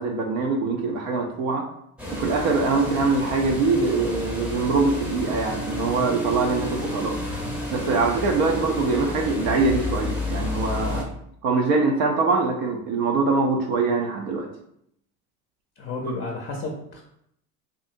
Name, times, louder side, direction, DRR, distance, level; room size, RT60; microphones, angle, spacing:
voice 1, 0.0-1.7 2.1-7.2 7.7-11.1 11.4-14.5, right 3 dB, 70° right, 1 dB, 0.6 m, -23 dB
sound 1, 2.0-11.0, left 2 dB, 5° right, 0.7 m, -31 dB
voice 2, 15.8-17.0, left 2 dB, 30° left, 1 dB, 0.5 m, -31 dB
2.6 x 2.5 x 2.5 m, 0.72 s
hypercardioid pair, 75°, 45 cm